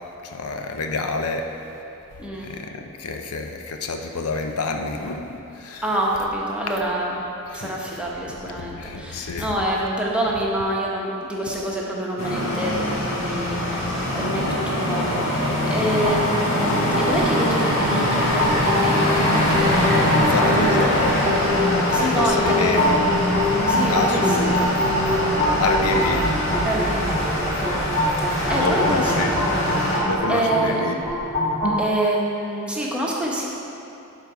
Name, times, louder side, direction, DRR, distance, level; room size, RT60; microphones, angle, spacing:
voice 1, 0.2-1.5 2.4-5.8 7.5-7.7 8.6-9.5 14.2-14.6 19.7-21.3 21.9-23.1 23.9-24.8 25.6-26.3 28.5-29.3 30.0-31.0, left 3 dB, 90° left, 4 dB, 0.6 m, -28 dB
voice 2, 5.8-7.2 7.5-19.1 21.9-23.1 23.6-24.7 26.6-30.8 31.8-33.5, right 1 dB, 5° right, -4 dB, 0.9 m, -27 dB
sound 1, 12.2-30.0, equal, 65° left, 1.7 m, -23 dB
sound 2, 16.0-31.8, left 1 dB, 15° left, 1.7 m, -25 dB
11.5 x 4.0 x 4.8 m, 2.9 s
head